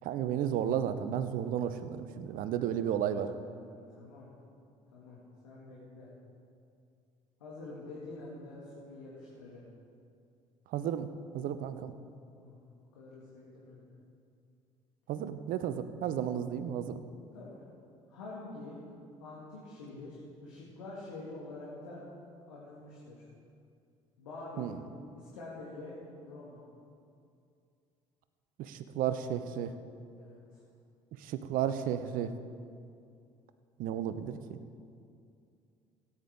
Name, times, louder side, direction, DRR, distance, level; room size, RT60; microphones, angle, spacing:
voice 1, 0.0-3.3 10.7-11.1 11.3-11.9 15.1-17.0 24.6-24.8 28.6-29.7 31.2-32.3 33.8-34.6, right 9 dB, 55° right, 11 dB, 0.7 m, -33 dB
voice 2, 3.2-4.3 4.9-5.2 5.4-6.1 7.4-9.6 12.3-12.6 12.9-13.8 17.3-17.6 18.1-18.8 19.2-22.0 22.5-23.3 24.2-24.7 25.2-26.0 26.2-26.6 30.2-30.6, left 2 dB, 75° left, -6 dB, 2.1 m, -46 dB
17.0 x 9.7 x 3.6 m, 2.4 s
figure-of-eight pair, 50°, 17 cm